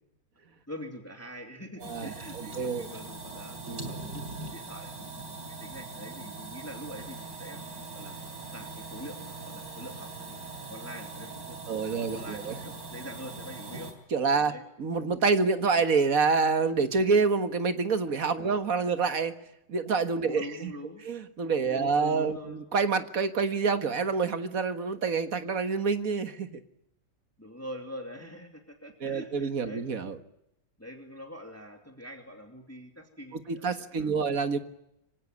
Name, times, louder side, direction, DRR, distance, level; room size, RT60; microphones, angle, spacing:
voice 1, 0.7-4.2 4.5-5.2 5.4-7.6 7.9-8.2 8.5-10.3 10.7-13.9 14.4-14.6 18.4-18.6 20.2-21.0 21.6-22.6 27.4-29.8 30.8-34.1, equal, 10° left, 4 dB, 2.7 m, -44 dB
sound 1, 1.8-13.9, right 3 dB, 75° right, 4.5 m, -41 dB
voice 2, 1.9-2.9 3.7-3.9 11.7-12.6 14.1-14.5 14.8-19.3 19.7-20.7 21.1-26.6 29.0-30.2 33.5-34.6, right 4 dB, 50° right, 10 dB, 1.8 m, -27 dB
25.5 x 17.0 x 9.6 m, 0.82 s
omnidirectional pair, 2.0 m